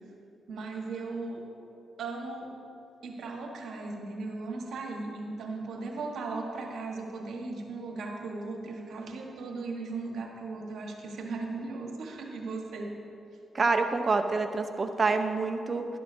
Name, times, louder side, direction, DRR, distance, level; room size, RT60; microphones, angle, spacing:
voice 1, 0.5-1.5 2.0-2.5 3.0-12.9, right 3 dB, 75° right, 1 dB, 1.4 m, -37 dB
voice 2, 13.5-15.9, right 3 dB, 45° right, 6 dB, 0.9 m, -27 dB
11.5 x 11.5 x 2.8 m, 2.6 s
supercardioid pair, 55°, 0 cm